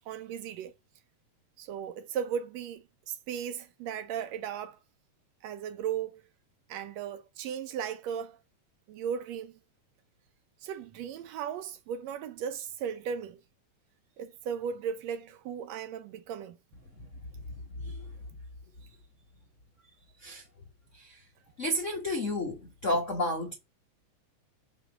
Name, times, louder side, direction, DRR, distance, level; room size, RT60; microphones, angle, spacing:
voice 1, 0.1-0.7 1.6-4.8 5.4-6.2 6.7-8.4 8.9-9.6 10.6-13.4 14.2-16.6, right 8 dB, 75° right, 1.7 m, -36 dB
voice 2, 21.6-23.5, left 1 dB, 85° left, 0.6 m, -31 dB
7.9 x 3.1 x 5.9 m
omnidirectional pair, 3.3 m